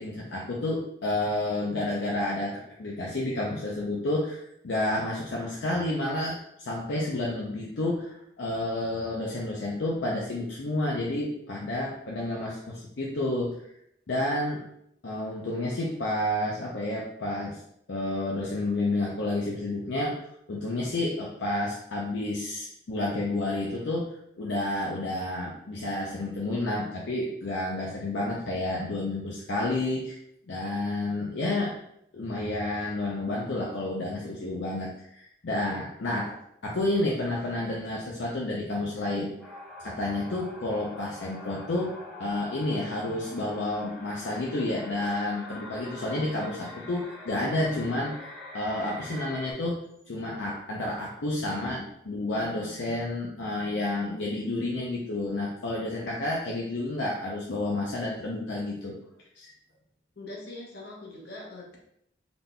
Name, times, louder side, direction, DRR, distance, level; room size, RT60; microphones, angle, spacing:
voice 1, 0.0-13.6 14.1-14.6 15.0-17.6 17.9-20.2 20.5-30.2 30.5-31.7 32.1-39.3 39.8-48.1 48.5-58.9 59.4-59.5, left 2 dB, 75° left, -3 dB, 0.6 m, -30 dB
sound 1, 39.4-49.5, left 2 dB, 5° right, 0.9 m, -44 dB
voice 2, 60.2-61.8, left 2 dB, 55° left, -3 dB, 1.0 m, -42 dB
3.9 x 3.7 x 2.2 m, 0.75 s
head